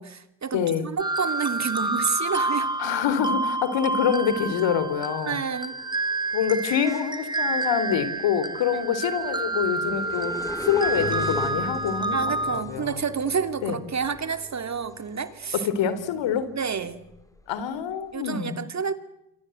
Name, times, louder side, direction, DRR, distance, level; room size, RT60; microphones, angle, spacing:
voice 1, 0.0-2.7 5.2-5.8 8.7-8.9 12.1-15.7 16.5-17.1 18.1-18.9, right 6 dB, 35° right, 10 dB, 2.9 m, -29 dB
voice 2, 0.5-0.8 2.8-5.4 6.3-10.4 10.6-12.9 13.6-13.8 15.5-16.5 17.5-18.5, left 8 dB, 65° left, 14 dB, 3.7 m, -26 dB
sound 1, 1.0-12.6, right 2 dB, 10° right, 2.4 m, -29 dB
sound 2, 4.3-4.4 4.7-16.0 16.4-18.1, left 1 dB, 5° left, 3.6 m, -39 dB
sound 3, 11.0-17.2, left 4 dB, 35° left, 3.1 m, -43 dB
28.0 x 24.5 x 8.0 m, 0.86 s
supercardioid pair, 80°, 48 cm